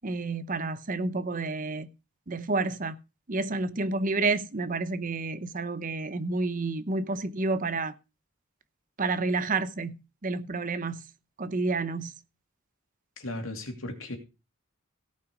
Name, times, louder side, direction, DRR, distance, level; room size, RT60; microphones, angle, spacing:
voice 1, 0.0-1.9 2.3-3.0 3.3-7.9 9.0-11.0 11.4-12.1, right 3 dB, 40° right, 0.7 m, -30 dB
voice 2, 13.2-14.2, left 1 dB, 75° left, 2.7 m, -36 dB
17.0 x 5.9 x 5.0 m
head